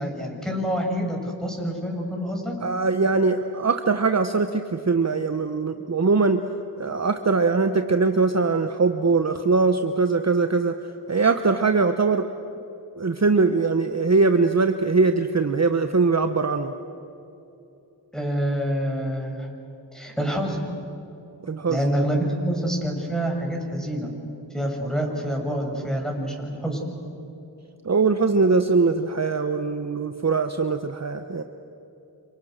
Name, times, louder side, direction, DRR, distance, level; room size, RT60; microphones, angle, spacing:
voice 1, 0.0-2.6 18.1-19.5 19.9-20.6 21.7-24.1 24.5-26.8, equal, ahead, 0 dB, 7.1 m, -27 dB
voice 2, 2.6-6.4 6.8-10.7 11.1-12.3 13.0-16.7 21.5-21.8 27.8-31.4, right 4 dB, 35° right, 8 dB, 1.1 m, -21 dB
29.5 x 27.5 x 6.6 m, 2.9 s
cardioid pair, 60°, 44 cm